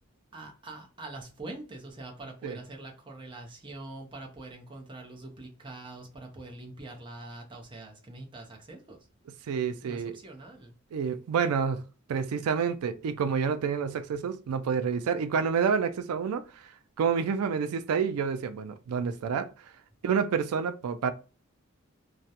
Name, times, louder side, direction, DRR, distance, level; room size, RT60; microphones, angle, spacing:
voice 1, 0.3-9.0 9.8-10.7, right 2 dB, 20° right, 0.5 m, -44 dB
voice 2, 9.5-10.2 10.9-11.8 12.1-16.7 17.0-19.5 20.0-21.1, right 6 dB, 90° right, 0.3 m, -28 dB
2.3 x 2.0 x 2.7 m
head